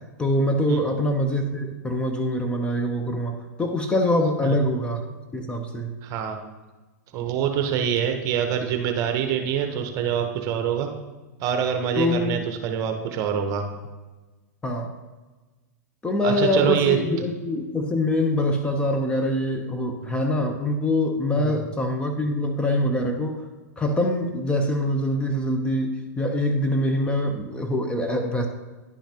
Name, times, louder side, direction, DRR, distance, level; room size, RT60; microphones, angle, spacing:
voice 1, 0.2-5.0 5.3-5.9 12.0-12.5 14.6-14.9 16.0-23.4 23.8-28.5, left 1 dB, 10° left, 4 dB, 0.7 m, -24 dB
voice 2, 6.0-6.4 7.1-10.9 11.4-13.7 16.2-17.0 21.3-21.7, right 8 dB, 40° right, 5 dB, 0.9 m, -25 dB
10.5 x 5.7 x 2.9 m, 1.2 s
hypercardioid pair, 110°, 9 cm